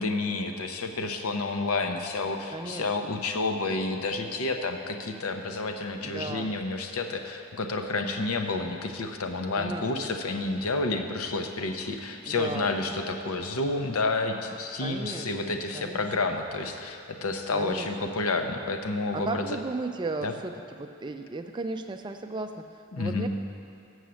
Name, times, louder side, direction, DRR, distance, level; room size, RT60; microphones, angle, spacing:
voice 1, 0.0-19.4 20.2-20.3 22.9-23.3, left 3 dB, 90° left, 5 dB, 0.7 m, -30 dB
voice 2, 2.5-3.2 6.0-6.5 9.5-10.1 12.2-13.0 14.8-16.3 17.5-17.9 19.1-23.3, right 3 dB, 20° right, 6 dB, 0.3 m, -36 dB
7.6 x 6.3 x 6.9 m, 2.7 s
head